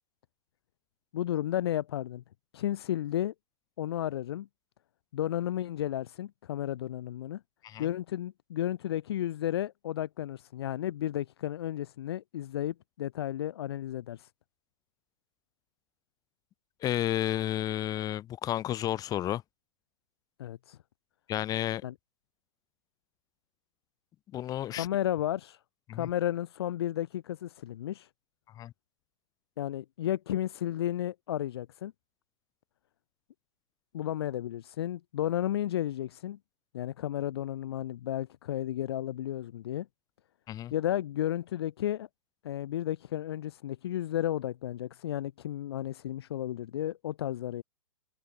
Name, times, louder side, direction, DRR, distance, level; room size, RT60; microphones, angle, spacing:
voice 1, 1.1-2.2 2.5-3.3 3.8-4.5 5.1-7.4 7.8-14.3 20.4-20.8 21.8-21.9 24.7-25.6 25.9-28.1 29.6-31.9 33.9-36.4 36.7-39.9 40.7-42.1 42.4-47.6, left 12 dB, 50° left, 1.6 m, -33 dB
voice 2, 16.8-19.4 21.3-21.8 24.3-24.9 25.9-26.1 28.5-28.7 40.5-40.7, left 12 dB, 20° left, 3.3 m, -31 dB
figure-of-eight pair, 115°, 17 cm